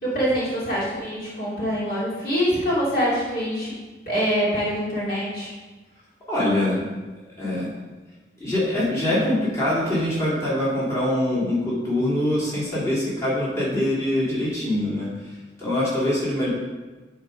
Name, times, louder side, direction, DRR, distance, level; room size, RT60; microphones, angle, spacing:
voice 1, 0.0-3.7 4.1-5.5, equal, 55° left, -7 dB, 2.7 m, -24 dB
voice 2, 6.3-6.8 7.4-7.7 8.4-15.1 15.6-16.5, left 1 dB, 15° left, -9 dB, 2.8 m, -23 dB
10.5 x 3.9 x 5.1 m, 1.2 s
head